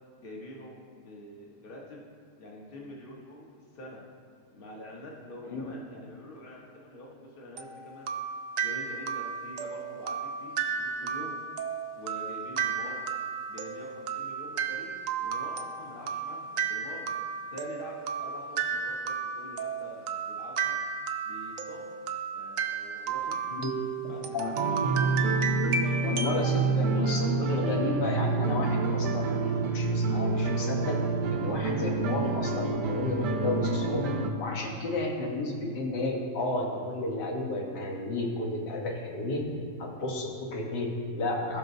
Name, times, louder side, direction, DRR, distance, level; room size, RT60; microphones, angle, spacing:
voice 1, 0.2-2.1 2.4-3.5 3.7-4.0 4.5-8.1 8.6-11.4 12.0-13.0 13.5-17.0 17.5-20.7 21.2-21.9 22.3-23.8 24.1-24.9, left 1 dB, 35° left, -2 dB, 1.3 m, -46 dB
sound 1, 7.6-26.4, right 6 dB, 65° right, 0.9 m, -33 dB
sound 2, 24.5-34.3, right 3 dB, 80° right, 1.3 m, -28 dB
voice 2, 26.0-31.0 31.3-34.1 34.4-39.5 39.8-41.6, left 2 dB, 80° left, -1 dB, 1.8 m, -32 dB
16.5 x 6.1 x 2.7 m, 2.1 s
omnidirectional pair, 1.8 m